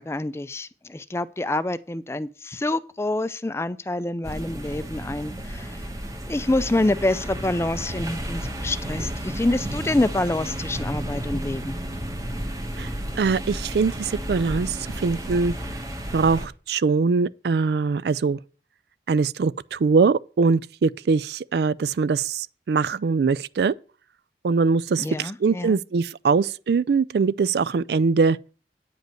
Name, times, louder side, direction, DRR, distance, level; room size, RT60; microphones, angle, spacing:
voice 1, 0.0-5.8 6.3-11.8 25.0-25.8, left 2 dB, 15° left, 0.4 m, -27 dB
sound 1, 4.2-16.5, right 1 dB, 20° right, 1.2 m, -32 dB
voice 2, 13.2-15.5 16.1-18.4 19.1-23.7 24.4-28.4, right 4 dB, 65° right, 0.4 m, -22 dB
9.4 x 5.2 x 7.6 m
head